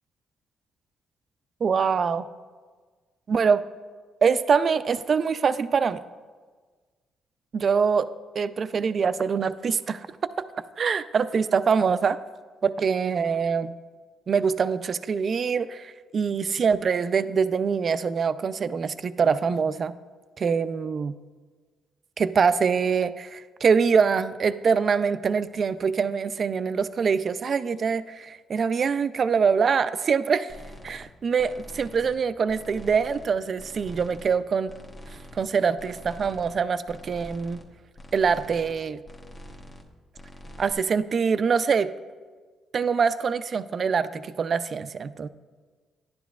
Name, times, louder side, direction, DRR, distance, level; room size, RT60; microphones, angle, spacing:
voice 1, 1.6-2.3 3.3-3.6 4.2-6.0 7.5-8.1 8.4-10.0 10.8-12.2 12.6-13.7 14.3-19.9 20.4-21.1 22.2-30.5 30.8-34.7 35.4-37.6 38.1-39.0 40.6-41.9 42.7-45.3, right 6 dB, 45° right, 13 dB, 0.3 m, -24 dB
sound 1, 30.5-31.1 31.4-32.2 32.5-33.3 33.6-34.4 34.7-35.5 35.8-36.6 36.9-37.6 38.0-38.8 39.0-39.9 40.1-40.7, left 1 dB, 35° left, 1.0 m, -45 dB
11.0 x 10.0 x 2.4 m, 1.5 s
cardioid pair, 90°, 0 cm